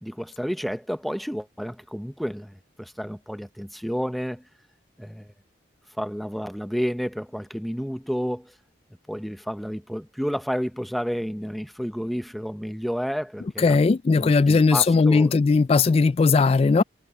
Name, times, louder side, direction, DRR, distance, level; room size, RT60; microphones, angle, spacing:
voice 1, 0.0-4.4 5.0-5.3 6.0-8.5 9.1-13.8 14.1-15.3, equal, ahead, 0.7 m, -30 dB
voice 2, 13.6-16.8, left 4 dB, 35° left, 0.3 m, -18 dB
head